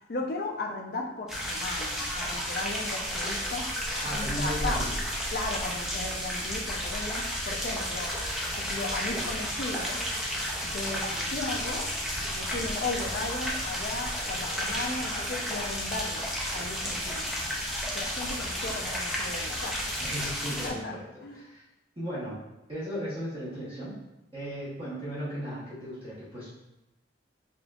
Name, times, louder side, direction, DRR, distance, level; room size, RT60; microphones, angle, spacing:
voice 1, 0.1-3.7 4.0-4.8 5.3-8.2 8.6-10.0 10.6-11.9 12.3-17.5 17.9-20.0 20.6-20.9 21.2-21.4, left 2 dB, 55° left, 1 dB, 0.5 m, -36 dB
sound 1, 1.3-20.7, equal, 5° right, 0.5 m, -32 dB
voice 2, 4.0-5.0 20.0-21.6 22.0-22.4 22.7-23.9 24.3-26.5, equal, 30° right, -10 dB, 1.1 m, -36 dB
5.0 x 2.6 x 2.3 m, 0.92 s
head